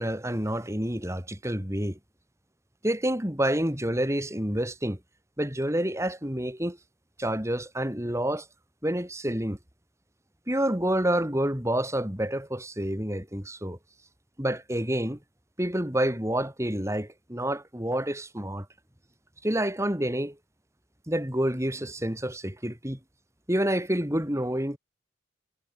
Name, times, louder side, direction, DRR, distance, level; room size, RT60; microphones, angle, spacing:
voice 1, 0.0-2.0 2.8-5.0 5.4-6.8 7.2-8.5 8.8-9.6 10.5-13.8 14.4-15.2 15.6-18.7 19.4-20.4 21.1-23.0 23.5-24.8, right 1 dB, 15° right, 3.9 m, -28 dB
head